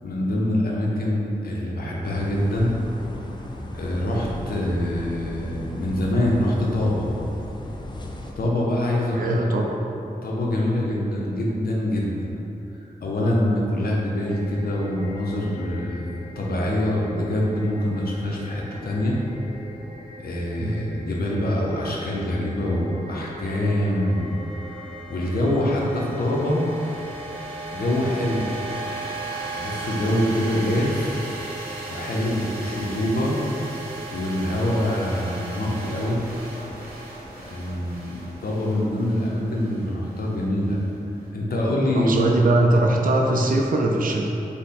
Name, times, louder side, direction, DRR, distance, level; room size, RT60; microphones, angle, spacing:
voice 1, 0.0-2.7 3.7-7.1 8.4-9.5 10.2-12.3 13.0-16.1 16.4-19.2 20.2-24.3 24.6-26.6 27.7-28.4 29.5-31.2 31.9-33.4 34.1-36.2 37.4-40.8 41.3-42.3, left 1 dB, 75° left, -3 dB, 0.6 m, -25 dB
sound 1, 2.0-8.3, left 1 dB, 30° left, 0.4 m, -36 dB
voice 2, 9.1-9.8 20.6-20.8 42.1-44.3, right 2 dB, 60° right, 0 dB, 0.4 m, -21 dB
sound 2, 14.1-34.1, equal, 35° right, 0.8 m, -42 dB
sound 3, 22.9-41.2, right 3 dB, 85° right, 0.9 m, -37 dB
3.3 x 2.1 x 4.0 m, 3.0 s
cardioid pair, 55°, 16 cm